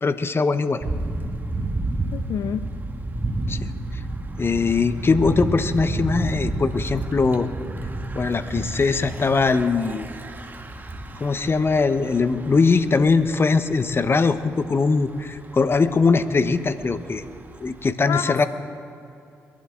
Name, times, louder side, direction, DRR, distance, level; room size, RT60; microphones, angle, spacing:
voice 1, 0.0-0.8 3.5-3.6 3.9-4.0 4.4-7.5 8.1-10.1 11.2-17.2 17.6-18.5, left 4 dB, 35° left, 11 dB, 0.9 m, -21 dB
Thunder / Bicycle, 0.8-17.9, right 2 dB, 30° right, 1.4 m, -31 dB
voice 2, 2.1-2.7 18.1-18.5, left 8 dB, 65° left, 12 dB, 0.4 m, -28 dB
22.5 x 11.5 x 3.7 m, 2.7 s
supercardioid pair, 50°, 6 cm